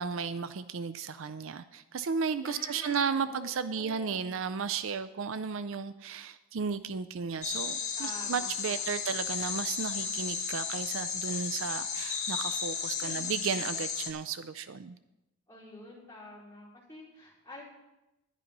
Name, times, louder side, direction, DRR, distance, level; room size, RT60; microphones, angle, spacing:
voice 1, 0.0-15.0, right 6 dB, 60° right, 13 dB, 0.4 m, -34 dB
voice 2, 2.4-4.3 8.0-9.0 13.0-13.5 15.5-17.6, left 2 dB, 10° left, -8 dB, 4.7 m, -48 dB
sound 1, 7.4-14.1, left 6 dB, 30° left, 1.3 m, -34 dB
11.5 x 11.0 x 5.3 m, 0.96 s
head